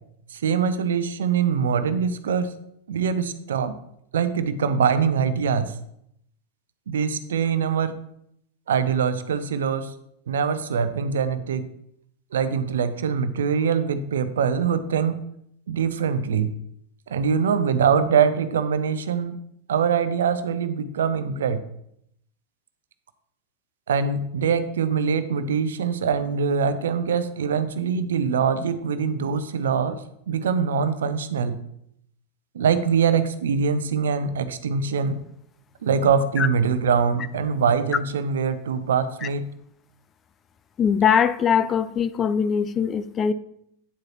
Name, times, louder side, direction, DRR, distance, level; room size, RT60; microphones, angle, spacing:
voice 1, 0.3-2.5 2.9-3.8 4.1-5.7 6.9-8.0 8.7-9.9 10.3-11.7 12.3-15.2 15.7-16.5 17.1-19.4 19.7-21.6 23.9-30.0 30.3-31.6 32.5-35.2 35.8-39.5, right 6 dB, 65° right, 12 dB, 0.7 m, -23 dB
voice 2, 40.8-43.3, left 7 dB, 25° left, 14 dB, 0.4 m, -21 dB
10.0 x 7.7 x 3.0 m, 0.74 s
figure-of-eight pair, 90°, 0 cm